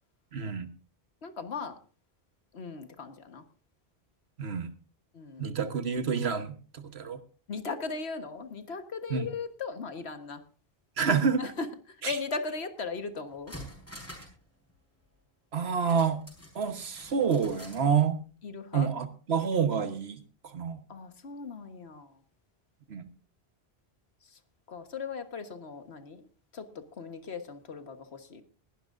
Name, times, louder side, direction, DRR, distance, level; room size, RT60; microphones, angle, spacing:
voice 1, 0.3-0.7 4.4-4.7 5.4-7.2 9.1-9.3 11.0-11.5 12.0-12.2 15.5-16.2 16.5-18.2 18.7-20.8 22.9-23.1, right 6 dB, 80° right, 9 dB, 1.4 m, -28 dB
voice 2, 1.2-1.8 2.5-3.4 5.1-5.6 7.5-10.4 11.4-13.5 18.4-18.9 20.9-22.2 24.3-24.4 24.7-26.3 26.5-28.4, left 4 dB, 90° left, 8 dB, 1.6 m, -38 dB
sound 1, 13.3-14.4 14.7-14.8 15.9-17.9 18.2-18.3, equal, 15° left, 4.5 m, -47 dB
20.0 x 12.0 x 2.6 m, 0.39 s
omnidirectional pair, 1.1 m